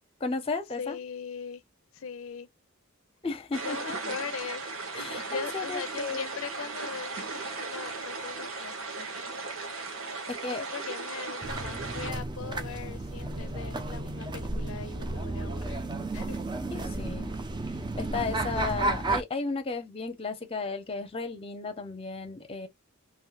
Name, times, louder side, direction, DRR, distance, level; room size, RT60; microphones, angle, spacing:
voice 1, 0.2-1.0 3.2-3.8 4.9-6.3 10.3-10.6 16.7-17.3 18.0-22.7, left 3 dB, 30° left, 0.6 m, -34 dB
voice 2, 0.8-1.6 1.9-2.5 3.6-4.7 5.3-9.1 10.4-15.8 16.1-16.4, left 6 dB, 85° left, 0.5 m, -40 dB
sound 1, 3.5-12.1, right 3 dB, 85° right, 1.0 m, -37 dB
sound 2, 11.4-19.2, right 2 dB, 20° right, 0.4 m, -33 dB
3.2 x 2.6 x 2.3 m
head